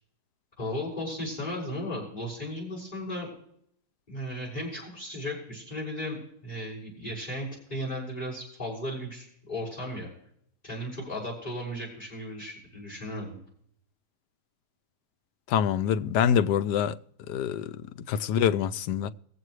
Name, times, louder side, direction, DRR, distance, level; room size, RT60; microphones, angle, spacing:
voice 1, 0.6-3.3 4.1-10.1 10.6-13.3, left 1 dB, 25° left, 6.5 m, -35 dB
voice 2, 15.5-17.0 17.3-17.7 18.1-19.1, left 8 dB, 85° left, 1.2 m, -25 dB
22.5 x 8.0 x 3.2 m
omnidirectional pair, 1.8 m